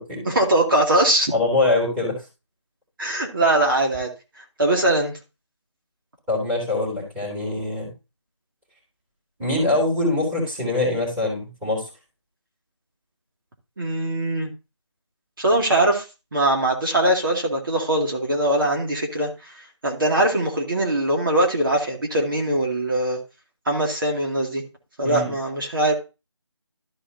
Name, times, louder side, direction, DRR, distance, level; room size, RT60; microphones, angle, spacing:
voice 1, 0.2-1.3 3.0-4.1 4.6-5.1 13.8-14.5 15.4-16.1 16.3-23.2 23.7-24.6 25.0-25.9, right 1 dB, 45° right, 0 dB, 2.4 m, -21 dB
voice 2, 1.3-2.2 6.3-7.9 9.4-11.8 25.0-25.3, left 2 dB, 5° right, -7 dB, 3.3 m, -23 dB
13.0 x 4.7 x 4.1 m, 0.28 s
figure-of-eight pair, 170°, 15 cm